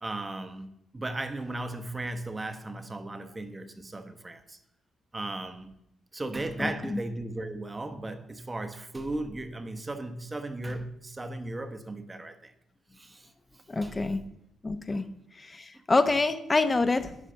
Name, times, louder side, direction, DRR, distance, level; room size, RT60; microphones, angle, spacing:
voice 1, 0.0-4.6 5.1-5.7 6.1-12.5 13.0-14.0 14.8-15.1 15.7-15.8, right 2 dB, 20° right, 0.9 m, -36 dB
voice 2, 6.6-7.0 13.7-14.2 14.6-15.0 15.4-17.2, left 3 dB, 25° left, 0.8 m, -26 dB
10.0 x 5.0 x 6.8 m
cardioid pair, 90°, 0 cm